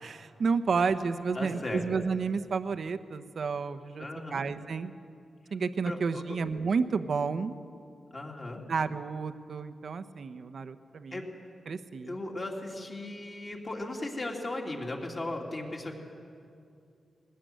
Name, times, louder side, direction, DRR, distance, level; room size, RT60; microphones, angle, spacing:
voice 1, 0.0-4.1 4.3-4.9 5.5-7.5 8.7-11.2 11.7-12.1, right 5 dB, 60° right, 10 dB, 1.0 m, -31 dB
voice 2, 1.3-1.9 4.0-4.4 5.8-6.4 8.1-8.6 11.1-11.2 12.0-16.0, left 2 dB, 35° left, 0 dB, 3.1 m, -37 dB
21.0 x 18.0 x 9.4 m, 2.5 s
wide cardioid pair, 110°, 0 cm